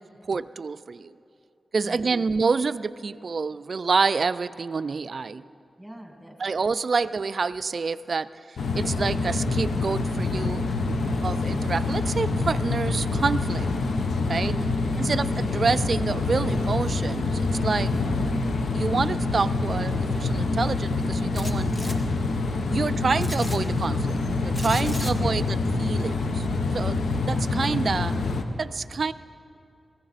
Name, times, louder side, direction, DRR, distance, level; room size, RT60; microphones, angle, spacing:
voice 1, 0.3-1.1 1.7-5.4 6.4-10.6 11.2-13.7 14.3-14.6 15.0-17.9 18.7-22.0 22.7-26.5 26.7-28.1 28.6-29.1, right 4 dB, 60° right, 15 dB, 0.3 m, -28 dB
voice 2, 5.8-6.5 14.4-15.0 21.7-22.1 22.7-22.8 24.7-25.5, right 1 dB, 5° right, 2 dB, 2.1 m, -42 dB
sound 1, 8.6-28.4, left 3 dB, 80° left, 0.8 m, -26 dB
sound 2, 21.3-22.0 23.2-23.6 24.5-25.1, left 1 dB, 35° left, 1.1 m, -37 dB
19.0 x 14.5 x 4.1 m, 2.6 s
cardioid pair, 65°, 0 cm